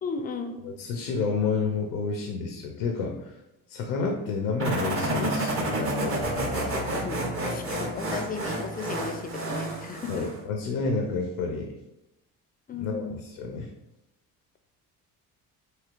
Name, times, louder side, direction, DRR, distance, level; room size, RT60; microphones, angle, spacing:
voice 1, 0.0-0.6 6.6-10.3 12.7-13.2, left 4 dB, 25° left, 7 dB, 0.4 m, -36 dB
voice 2, 0.6-3.4 3.7-6.3 10.1-11.7 12.8-13.7, left 4 dB, 80° left, 3 dB, 0.5 m, -30 dB
sound 1, 4.6-10.4, right 1 dB, 35° right, 0.8 m, -30 dB
sound 2, 6.2-10.6, left 1 dB, 90° right, 1.1 m, -43 dB
3.1 x 2.8 x 2.4 m, 0.94 s
hypercardioid pair, 60°, 38 cm